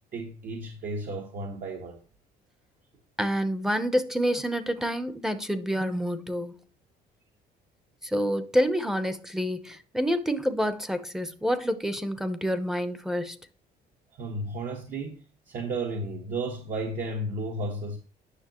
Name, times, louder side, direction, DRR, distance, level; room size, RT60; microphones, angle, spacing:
voice 1, 0.1-2.0 14.2-18.0, right 2 dB, 55° right, 1.3 m, -33 dB
voice 2, 3.2-6.5 8.0-13.4, equal, 5° right, 0.8 m, -28 dB
9.9 x 6.1 x 3.0 m
cardioid pair, 140°, 17 cm